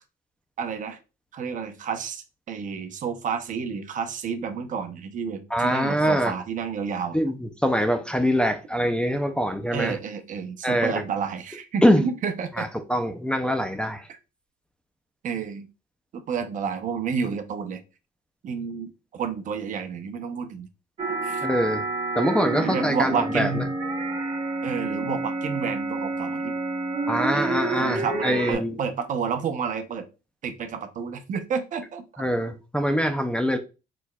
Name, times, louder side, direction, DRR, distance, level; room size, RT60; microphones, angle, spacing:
voice 1, 0.6-1.0 1.3-7.2 9.7-12.7 14.1-14.2 15.2-15.7 16.1-17.8 18.4-20.7 21.2-21.5 22.6-23.7 24.6-26.5 27.3-30.1 30.4-32.2, right 6 dB, 50° right, 0.7 m, -30 dB
voice 2, 5.5-6.3 7.1-7.3 7.6-10.0 10.6-11.0 11.8-12.0 12.6-14.0 21.4-21.8 22.1-23.5 27.1-28.8 32.2-33.6, equal, 5° left, 0.5 m, -23 dB
sound 1, 21.0-28.5, right 3 dB, 30° right, 1.3 m, -29 dB
4.5 x 4.1 x 2.3 m
cardioid pair, 110°, 17 cm